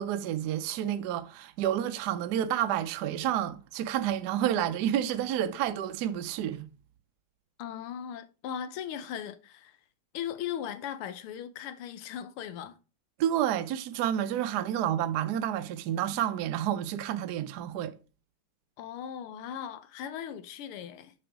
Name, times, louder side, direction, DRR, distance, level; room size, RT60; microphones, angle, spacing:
voice 1, 0.0-6.7 13.2-17.9, right 11 dB, 75° right, 0.9 m, -30 dB
voice 2, 7.6-9.8 10.1-12.7 18.8-21.1, left 9 dB, 85° left, 1.6 m, -38 dB
6.5 x 6.0 x 3.5 m
omnidirectional pair, 2.4 m